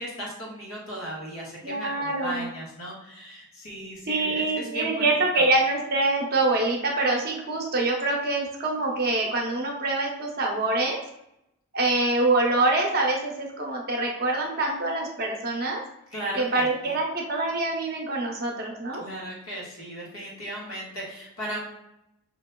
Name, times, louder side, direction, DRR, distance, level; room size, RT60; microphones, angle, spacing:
voice 1, 0.0-5.5 16.1-17.0 19.0-21.6, right 1 dB, 75° left, -4 dB, 1.5 m, -36 dB
voice 2, 1.6-2.5 4.1-11.0 11.7-15.8 16.4-19.0, right 2 dB, 45° right, 0 dB, 0.8 m, -25 dB
5.3 x 2.9 x 2.2 m, 0.83 s
head